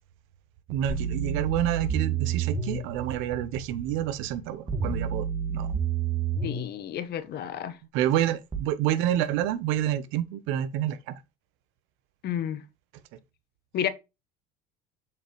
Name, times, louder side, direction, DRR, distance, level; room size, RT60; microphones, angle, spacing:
voice 1, 0.7-5.7 7.9-11.2, right 11 dB, 75° right, 0.9 m, -28 dB
sound 1, 0.9-2.8 4.7-6.7 8.5-8.6, right 6 dB, 20° right, 1.8 m, -29 dB
voice 2, 6.4-7.8 12.2-12.6 13.7-13.9, left 10 dB, 55° left, 1.1 m, -31 dB
7.2 x 5.3 x 3.1 m
supercardioid pair, 95°, 20 cm